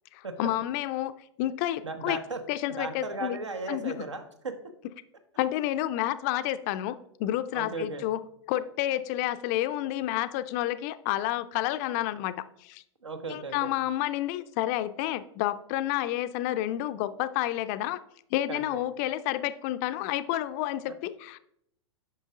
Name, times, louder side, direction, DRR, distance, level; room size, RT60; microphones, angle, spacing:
voice 1, 0.1-2.2 2.5-3.4 3.7-3.9 5.4-8.2 8.5-12.8 13.3-18.0 18.3-21.4, left 14 dB, 35° left, 12 dB, 0.4 m, -30 dB
voice 2, 1.8-2.4 2.7-4.5 7.5-8.0 13.0-13.7 18.5-18.6 20.9-21.0, right 3 dB, 75° right, 7 dB, 1.1 m, -36 dB
8.8 x 5.8 x 3.5 m, 0.72 s
figure-of-eight pair, 100°, 15 cm